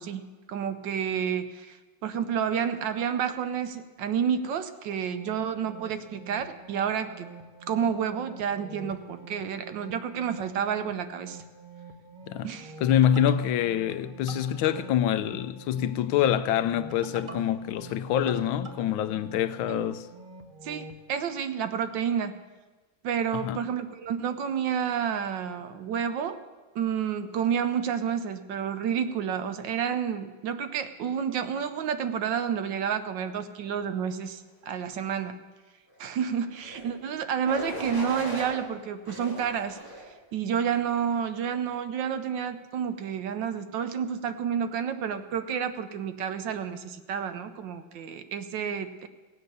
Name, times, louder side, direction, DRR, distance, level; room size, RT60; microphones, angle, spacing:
voice 1, 0.0-1.8 2.0-7.3 7.7-11.4 12.4-12.7 19.7-19.8 20.6-22.4 23.0-26.4 26.7-35.4 36.0-39.8 40.3-49.1, right 8 dB, 70° right, 1.3 m, -30 dB
sound 1, 4.9-21.0, right 3 dB, 35° right, 0.8 m, -46 dB
voice 2, 12.8-20.1 23.3-23.6, left 10 dB, 80° left, 1.4 m, -26 dB
sound 2, 36.5-36.9 37.4-38.5 39.1-40.1 40.7-41.1, right 1 dB, 10° right, 2.4 m, -38 dB
16.5 x 8.1 x 6.6 m
omnidirectional pair, 2.2 m